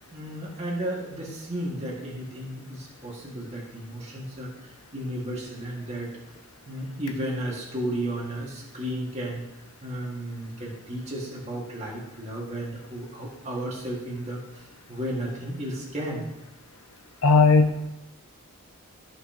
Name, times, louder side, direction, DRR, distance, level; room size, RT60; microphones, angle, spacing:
voice 1, 0.1-6.1 6.7-9.4 9.8-14.4 14.9-16.3, right 1 dB, 30° right, -4 dB, 2.0 m, -33 dB
voice 2, 17.2-17.9, left 4 dB, 90° left, 4 dB, 1.0 m, -17 dB
15.0 x 5.5 x 3.0 m, 0.94 s
head